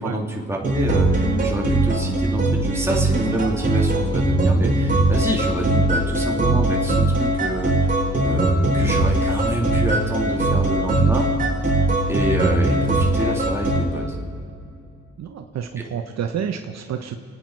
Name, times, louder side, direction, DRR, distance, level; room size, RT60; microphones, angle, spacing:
voice 1, 0.0-7.9 8.2-11.3 12.1-14.2 15.8-15.9, right 1 dB, 10° right, -1 dB, 3.1 m, -27 dB
sound 1, 0.6-13.8, right 2 dB, 25° right, 4.1 m, -20 dB
voice 2, 15.2-17.2, right 8 dB, 60° right, 5 dB, 1.1 m, -29 dB
28.5 x 9.6 x 4.8 m, 2.5 s
cardioid pair, 90°, 30 cm